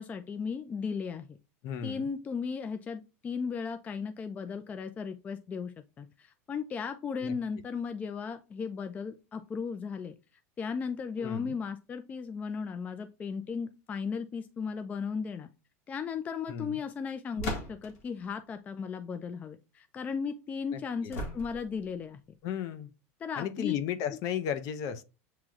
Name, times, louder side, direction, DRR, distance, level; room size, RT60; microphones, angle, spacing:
voice 1, 0.0-1.4 1.8-10.2 10.6-15.5 15.9-22.2 23.2-23.8, left 6 dB, 20° left, 0.4 m, -36 dB
voice 2, 1.6-2.1 7.2-7.3 11.2-11.6 16.5-16.8 20.7-21.1 22.4-22.9 23.4-25.0, left 9 dB, 50° left, 0.7 m, -35 dB
sound 1, 17.4-18.1 21.1-21.8, left 1 dB, 75° left, 1.8 m, -37 dB
7.5 x 3.0 x 2.4 m
supercardioid pair, 140°, 8 cm